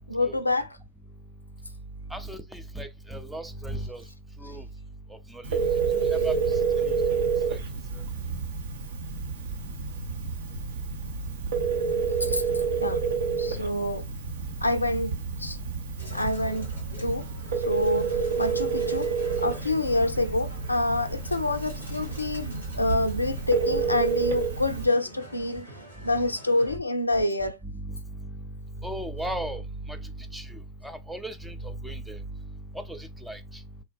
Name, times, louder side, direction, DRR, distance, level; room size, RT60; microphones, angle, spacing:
voice 1, 0.1-0.7 12.2-12.4 12.8-13.0 13.4-14.0 14.6-15.6 16.1-16.7 17.0-17.2 17.6-19.1 19.4-25.7 26.0-27.6, left 2 dB, 85° left, 0.3 m, -27 dB
voice 2, 2.1-4.1 4.4-4.7 5.1-5.6 5.9-7.2 7.5-7.6 7.9-8.0 22.8-22.9 26.7-26.8 27.6-33.6, right 1 dB, 5° right, 0.4 m, -37 dB
Telephone, 5.4-24.8, right 5 dB, 60° right, 0.6 m, -29 dB
sound 1, 16.0-26.8, right 1 dB, 85° right, 1.7 m, -46 dB
3.2 x 2.1 x 3.1 m
figure-of-eight pair, 90°, 0 cm